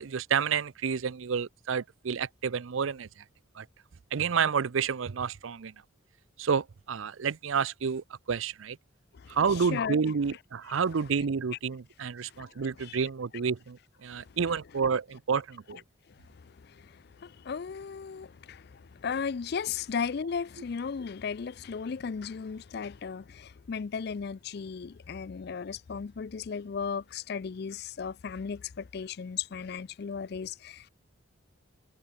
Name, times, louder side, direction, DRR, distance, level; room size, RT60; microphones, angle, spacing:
voice 1, 0.0-3.1 3.6-3.7 4.1-5.7 6.4-8.8 9.3-15.8, right 6 dB, 75° right, 0.5 m, -30 dB
voice 2, 9.1-10.0 11.0-11.1 12.2-13.0 14.1-14.4 15.7-15.8 16.1-30.9, left 6 dB, 50° left, 0.4 m, -36 dB
head